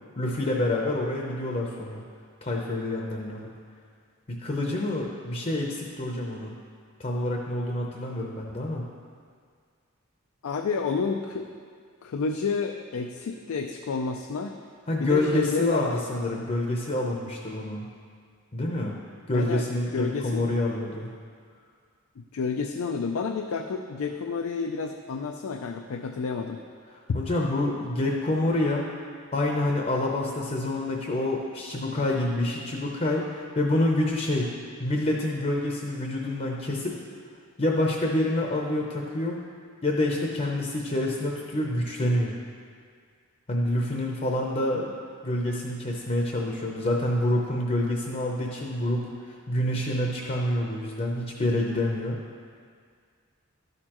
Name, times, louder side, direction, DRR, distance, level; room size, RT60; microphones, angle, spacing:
voice 1, 0.2-2.0 2.4-3.5 4.3-6.5 7.0-8.9 14.9-17.9 18.5-18.9 19.3-21.1 27.1-28.9 29.3-34.5 34.8-36.9 37.6-39.4 39.8-42.3 43.5-44.9 45.2-52.2, left 1 dB, 35° left, -1 dB, 0.7 m, -27 dB
voice 2, 10.4-11.5 12.0-14.6 15.0-16.0 19.3-19.6 19.9-20.5 22.2-26.6, left 5 dB, 85° left, 4 dB, 0.4 m, -30 dB
12.0 x 6.6 x 3.0 m, 2.1 s
head